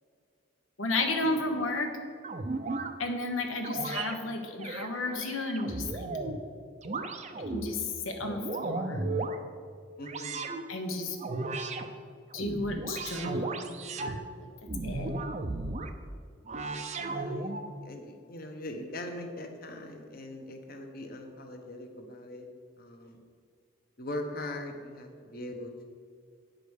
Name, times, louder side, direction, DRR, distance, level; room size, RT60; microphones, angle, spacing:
voice 1, 0.8-1.9 3.0-6.1 7.5-9.0 10.7-11.2 12.3-13.6 14.0-14.2 14.8-15.1, left 2 dB, 80° left, 4 dB, 1.3 m, -32 dB
sound 1, 2.2-2.9 3.6-4.1 4.6-6.4 6.8-7.7 8.2-9.4 10.0-10.6 11.2-11.9 12.3-14.2 14.7-15.9 16.5-17.7, right 3 dB, 35° right, 0.6 m, -35 dB
voice 2, 10.0-10.5 17.0-22.5 22.8-23.2 24.0-25.9, left 1 dB, 45° left, 4 dB, 1.1 m, -41 dB
9.5 x 5.2 x 6.4 m, 2.2 s
head